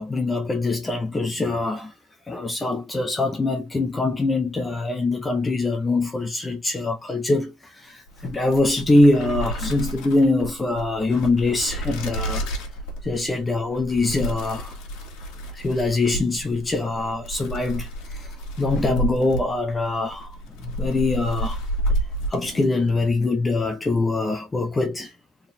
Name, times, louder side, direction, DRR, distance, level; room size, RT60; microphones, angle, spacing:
voice 1, 0.0-1.9 2.3-12.5 13.0-14.8 15.5-21.6 22.3-25.1, left 2 dB, 10° left, 0.5 m, -23 dB
sound 1, 8.1-23.0, right 1 dB, 60° left, 2.0 m, -31 dB
4.3 x 3.7 x 2.6 m
cardioid pair, 180°, 0 cm